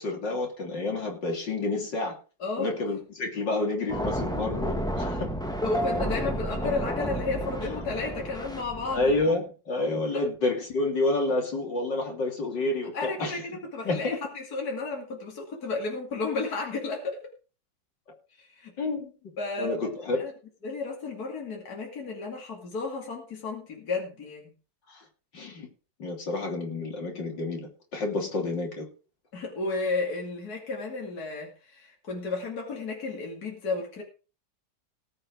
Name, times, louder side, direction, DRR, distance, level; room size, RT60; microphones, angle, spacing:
voice 1, 0.0-2.2 2.6-5.3 8.9-13.4 13.8-14.2 18.8-19.3 19.6-20.3 24.9-25.0 25.3-25.7 26.0-28.9, left 2 dB, 70° left, 1 dB, 3.6 m, -29 dB
voice 2, 2.4-2.7 5.6-9.1 12.9-17.2 18.4-18.7 19.4-19.7 20.2-20.3 20.6-24.5 29.3-34.0, left 3 dB, 55° left, -1 dB, 3.0 m, -33 dB
sound 1, 3.9-9.2, equal, ahead, 1.5 m, -31 dB
19.0 x 6.6 x 4.7 m, 0.36 s
omnidirectional pair, 2.0 m